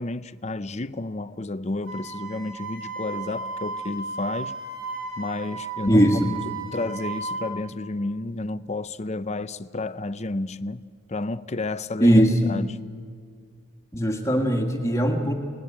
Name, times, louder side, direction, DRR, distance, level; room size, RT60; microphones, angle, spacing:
voice 1, 0.0-4.5 5.2-6.1 6.7-10.8 11.1-12.8, left 2 dB, 30° left, 0.6 m, -31 dB
Wind instrument woodwind instrument, 1.9-7.5, right 3 dB, 60° right, 4.6 m, -34 dB
voice 2, 5.9-6.3 12.0-12.5 13.9-15.3, equal, 15° left, 1.8 m, -19 dB
28.5 x 20.0 x 8.7 m
head